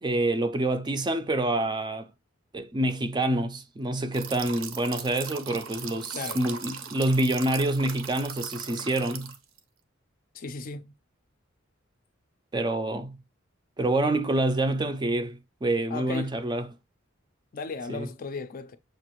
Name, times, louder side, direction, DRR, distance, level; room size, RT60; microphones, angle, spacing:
voice 1, 0.0-2.1 2.5-9.3 12.5-13.2 13.8-16.7 17.9-18.1, right 1 dB, 20° right, 0.4 m, -27 dB
sound 1, 4.1-9.6, right 7 dB, 75° right, 0.7 m, -39 dB
voice 2, 10.3-10.9 15.9-16.3 17.5-18.8, left 4 dB, 45° left, 0.4 m, -36 dB
6.7 x 2.5 x 2.9 m
head